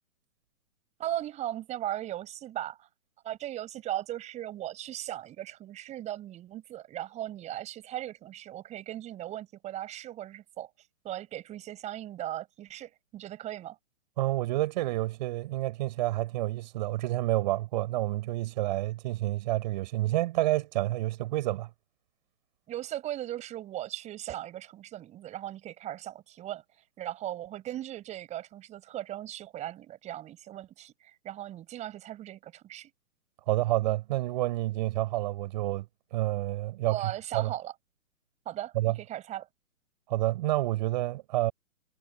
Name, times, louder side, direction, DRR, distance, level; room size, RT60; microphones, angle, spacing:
voice 1, 1.0-2.9 3.2-10.7 11.0-13.8 22.7-32.9 36.9-37.7 38.5-39.5, right 13 dB, 15° right, 7.3 m, -38 dB
voice 2, 14.2-21.7 33.5-35.9 36.1-37.0 37.3-37.5 38.7-39.0 40.1-41.5, right 16 dB, 35° right, 4.8 m, -29 dB
figure-of-eight pair, 125°, 41 cm